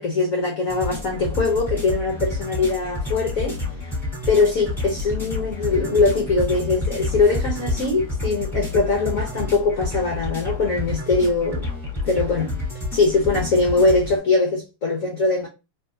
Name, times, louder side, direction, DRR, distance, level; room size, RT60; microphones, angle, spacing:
voice 1, 0.0-3.6 4.3-11.7 12.0-12.6 12.9-15.5, left 3 dB, 75° left, 0.7 m, -21 dB
sound 1, 0.7-14.2, left 2 dB, ahead, 1.0 m, -29 dB
3.4 x 2.7 x 2.6 m
omnidirectional pair, 2.4 m